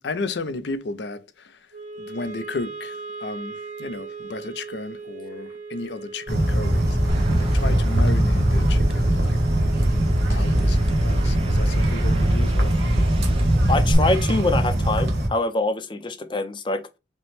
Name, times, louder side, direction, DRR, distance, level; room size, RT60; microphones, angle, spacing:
voice 1, 0.0-1.7 1.9-9.4 10.3-12.8, left 3 dB, 70° left, 0.5 m, -34 dB
Wind instrument woodwind instrument, 1.7-14.0, right 3 dB, 45° right, 0.9 m, -40 dB
sound 1, 6.3-15.3, right 1 dB, 65° right, 1.3 m, -21 dB
sound 2, 7.1-13.9, right 1 dB, 30° right, 0.5 m, -25 dB
voice 2, 13.7-16.8, left 2 dB, 25° left, 0.5 m, -24 dB
5.2 x 2.1 x 3.3 m
head